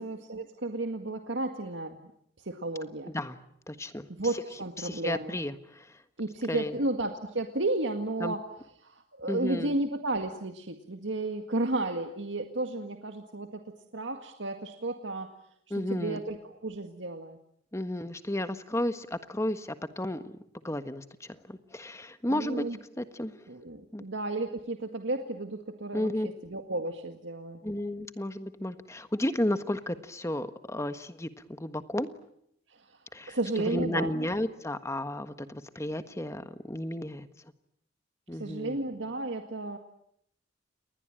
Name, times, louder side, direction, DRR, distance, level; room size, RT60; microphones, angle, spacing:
voice 1, 0.0-2.0 2.4-3.1 4.1-5.4 6.2-8.4 8.8-13.6 13.9-15.3 15.9-17.4 22.3-22.8 23.5-27.6 32.7-33.0 33.3-34.1 38.4-39.8, right 2 dB, 85° right, 5 dB, 2.0 m, -33 dB
voice 2, 3.0-3.4 3.7-4.1 4.8-5.9 6.5-6.7 8.2-8.3 9.3-9.8 15.7-16.2 17.7-20.4 20.6-22.6 23.0-23.4 23.9-24.0 25.9-26.3 27.6-31.3 31.6-32.1 33.1-33.4 33.7-37.3 38.3-38.8, left 1 dB, 15° left, 10 dB, 1.4 m, -33 dB
29.0 x 21.0 x 9.0 m, 0.73 s
head